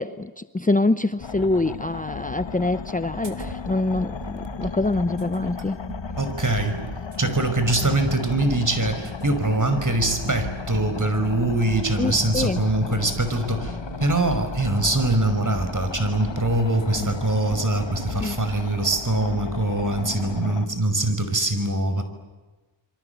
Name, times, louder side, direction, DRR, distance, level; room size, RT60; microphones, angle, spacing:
voice 1, 0.0-5.8 12.0-12.6 17.0-17.1 18.2-18.4, left 2 dB, 20° left, 0.8 m, -25 dB
sound 1, 1.2-20.7, left 6 dB, 70° left, 1.6 m, -35 dB
sound 2, 3.2-18.7, right 4 dB, 80° right, 2.9 m, -39 dB
voice 2, 6.2-6.8 7.2-22.0, right 2 dB, 40° right, 5.6 m, -23 dB
28.0 x 23.5 x 8.2 m
wide cardioid pair, 60°, 45 cm